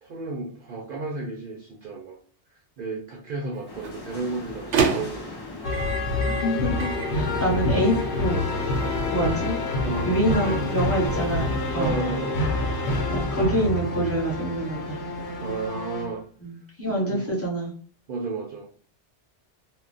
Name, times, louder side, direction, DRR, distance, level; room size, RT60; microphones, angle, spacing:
voice 1, 0.0-2.2 2.5-5.4 9.8-10.8 11.7-12.4 15.4-16.2 16.8-17.3 18.1-18.7, right 3 dB, 60° right, 0 dB, 0.7 m, -33 dB
Microwave oven, 3.5-11.7, right 5 dB, 85° right, 0.9 m, -32 dB
sound 1, 3.7-15.7, left 3 dB, 35° left, 0.4 m, -39 dB
sound 2, 5.6-16.2, left 2 dB, 85° left, 1.0 m, -27 dB
voice 2, 6.2-8.4 9.1-9.6 10.0-11.4 11.7-11.9 13.1-15.0 16.4-17.7, equal, 15° left, -3 dB, 0.9 m, -26 dB
2.2 x 2.1 x 3.8 m, 0.42 s
omnidirectional pair, 1.1 m